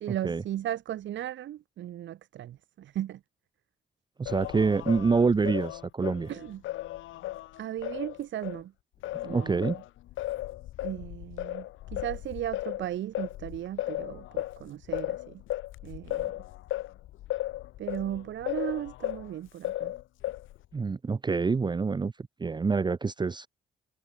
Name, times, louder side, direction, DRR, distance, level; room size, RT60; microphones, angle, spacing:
voice 1, 0.0-3.2 6.3-6.6 7.6-8.7 9.2-9.8 10.8-11.7 11.9-15.4 15.8-16.3 17.8-19.9, right 12 dB, 70° right, 1.2 m, -36 dB
voice 2, 4.2-6.3 9.3-9.8 20.7-22.1 22.4-23.5, right 4 dB, 20° right, 0.6 m, -26 dB
Singing, 4.3-8.6 9.0-19.3 19.6-20.7, left 15 dB, 80° left, 0.7 m, -36 dB
cardioid pair, 90°, 20 cm